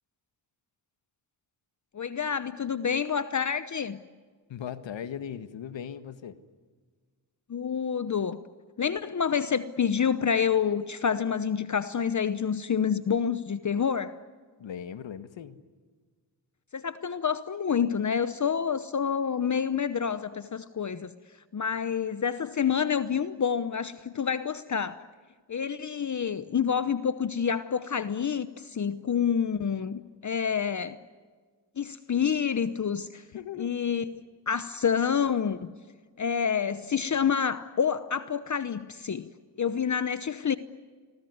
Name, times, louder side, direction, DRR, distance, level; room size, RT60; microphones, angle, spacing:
voice 1, 1.9-4.0 7.5-8.4 8.8-14.1 16.7-21.1 21.5-25.0 25.5-31.0 31.8-33.2 33.6-35.7 36.2-39.3 39.6-40.6, left 7 dB, 40° left, 13 dB, 0.9 m, -28 dB
voice 2, 4.5-6.4 14.6-15.6 33.3-33.8, left 8 dB, 75° left, 11 dB, 1.7 m, -38 dB
28.0 x 22.0 x 9.5 m, 1.5 s
cardioid pair, 80°, 45 cm